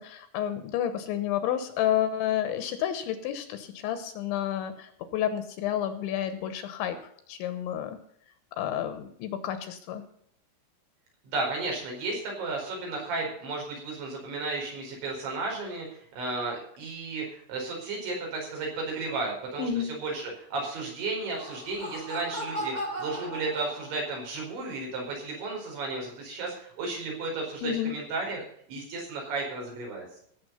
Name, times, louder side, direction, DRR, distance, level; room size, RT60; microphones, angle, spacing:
voice 1, 0.0-7.0 7.3-8.0 8.6-10.1 19.6-19.9 27.6-28.0, left 10 dB, 75° left, 10 dB, 3.1 m, -30 dB
voice 2, 11.2-19.7 20.0-28.4 28.7-30.1, right 3 dB, 65° right, -1 dB, 6.9 m, -33 dB
Laughter, 21.2-24.3, equal, 20° right, 1.1 m, -37 dB
17.5 x 7.9 x 5.5 m, 0.66 s
omnidirectional pair, 5.8 m